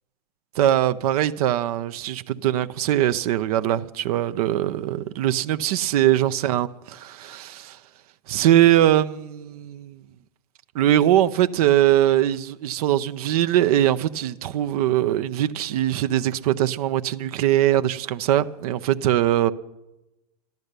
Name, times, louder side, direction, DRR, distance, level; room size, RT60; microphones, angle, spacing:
voice 1, 0.5-7.8 8.3-10.0 10.7-19.5, right 12 dB, 65° right, 0.7 m, -21 dB
13.5 x 12.0 x 6.6 m
hypercardioid pair, 110°, 21 cm